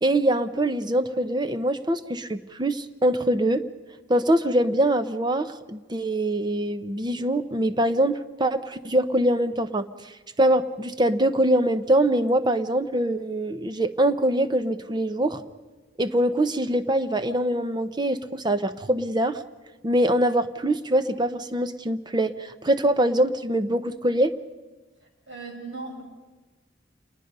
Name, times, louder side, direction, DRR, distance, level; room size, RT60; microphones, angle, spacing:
voice 1, 0.0-3.6 4.1-9.9 10.4-15.4 16.0-19.4 19.8-24.4, right 1 dB, 20° right, 11 dB, 0.8 m, -23 dB
voice 2, 25.3-26.0, right 3 dB, 75° right, 2 dB, 5.4 m, -37 dB
27.5 x 21.0 x 5.4 m, 1.3 s
head